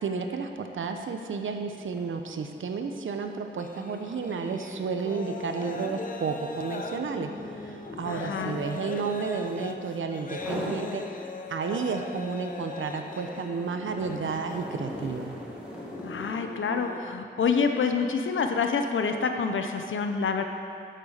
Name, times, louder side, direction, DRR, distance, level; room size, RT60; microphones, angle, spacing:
voice 1, 0.0-7.3 7.6-15.3, right 5 dB, 80° right, 5 dB, 0.9 m, -32 dB
sound 1, 0.8-1.0 1.4-9.8 10.3-10.8 11.3-16.4, equal, 5° right, 2.2 m, -42 dB
sound 2, 3.6-17.1, left 4 dB, 45° left, 0.8 m, -40 dB
voice 2, 8.0-8.6 16.0-20.4, left 5 dB, 80° left, 5 dB, 0.8 m, -27 dB
9.0 x 7.6 x 6.6 m, 2.5 s
wide cardioid pair, 105°, 20 cm